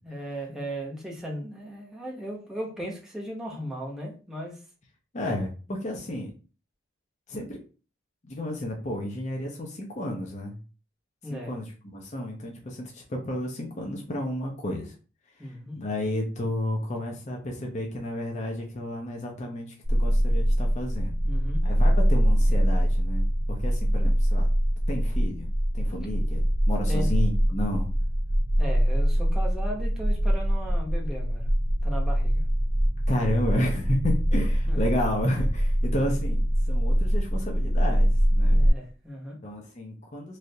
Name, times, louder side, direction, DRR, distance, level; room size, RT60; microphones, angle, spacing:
voice 1, 0.0-4.6 11.2-11.5 15.4-15.8 21.2-21.6 26.9-27.1 28.6-31.5 31.8-32.4 34.7-34.8 38.4-39.4, equal, 5° right, -2 dB, 0.8 m, -36 dB
voice 2, 5.1-6.3 7.3-7.6 8.2-10.6 11.3-14.9 15.8-21.1 21.6-24.5 24.9-25.5 25.7-26.4 26.7-27.9 33.1-38.6 39.4-40.4, left 1 dB, 35° left, 0 dB, 0.6 m, -31 dB
sound 1, 19.8-38.7, equal, 35° right, 0.7 m, -23 dB
3.2 x 2.5 x 2.7 m, 0.36 s
head